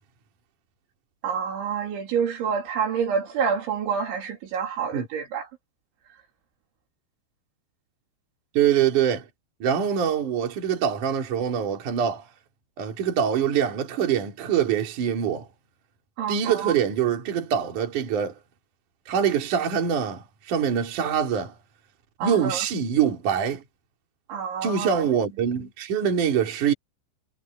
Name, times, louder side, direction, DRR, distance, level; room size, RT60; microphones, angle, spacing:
voice 1, 1.2-5.5 16.2-16.7 22.2-22.7 24.3-25.0, right 6 dB, 70° right, 5.6 m, -28 dB
voice 2, 8.5-9.3 9.6-12.3 12.8-15.5 16.3-18.3 19.1-21.5 22.2-23.6 24.6-26.7, right 8 dB, 45° right, 4.3 m, -24 dB
omnidirectional pair, 5.6 m